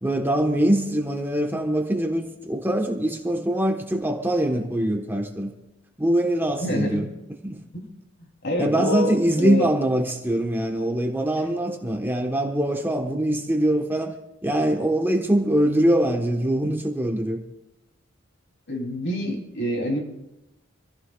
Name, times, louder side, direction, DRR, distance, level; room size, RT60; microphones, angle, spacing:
voice 1, 0.0-5.5 6.0-7.0 7.4-7.6 8.6-14.2 14.4-17.4, right 1 dB, 10° right, 2 dB, 1.2 m, -23 dB
voice 2, 6.6-7.0 7.7-7.9 8.4-9.7 11.4-11.5 18.7-20.0, left 1 dB, 55° left, 1 dB, 3.2 m, -27 dB
26.5 x 15.5 x 2.4 m, 0.94 s
head